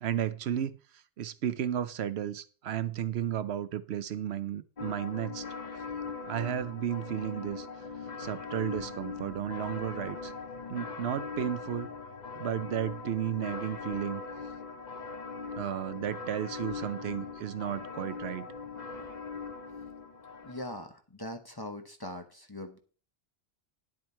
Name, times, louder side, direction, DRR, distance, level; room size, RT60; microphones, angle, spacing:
voice 1, 0.0-5.8 6.2-10.3 10.7-11.9 12.4-14.2 15.6-18.5, right 10 dB, 70° right, 15 dB, 0.9 m, -34 dB
sound 1, 4.8-20.7, left 4 dB, 40° left, 1.1 m, -40 dB
sound 2, 8.8-13.9, left 7 dB, 65° left, 1.3 m, -56 dB
voice 2, 20.4-22.8, left 1 dB, 20° left, 6 dB, 1.1 m, -41 dB
10.5 x 7.4 x 4.4 m, 0.40 s
omnidirectional pair, 1.1 m